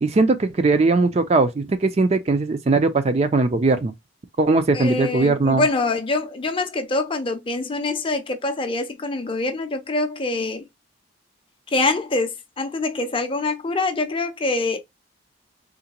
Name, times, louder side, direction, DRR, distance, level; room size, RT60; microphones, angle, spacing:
voice 1, 0.0-3.9 4.4-5.6, right 3 dB, 35° right, 0.4 m, -19 dB
voice 2, 4.7-10.7 11.7-14.8, left 2 dB, 25° left, 0.5 m, -24 dB
3.7 x 2.1 x 2.8 m
head